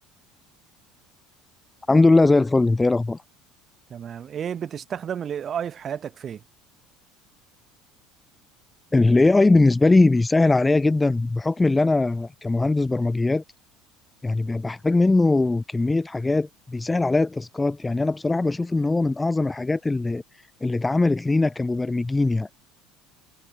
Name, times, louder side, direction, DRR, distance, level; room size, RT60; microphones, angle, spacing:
voice 1, 1.9-3.2 8.9-13.4 14.2-20.2 20.6-22.5, left 2 dB, 10° left, 0.5 m, -20 dB
voice 2, 3.9-6.4, right 8 dB, 35° right, 5.7 m, -31 dB
supercardioid pair, 120°, 0 cm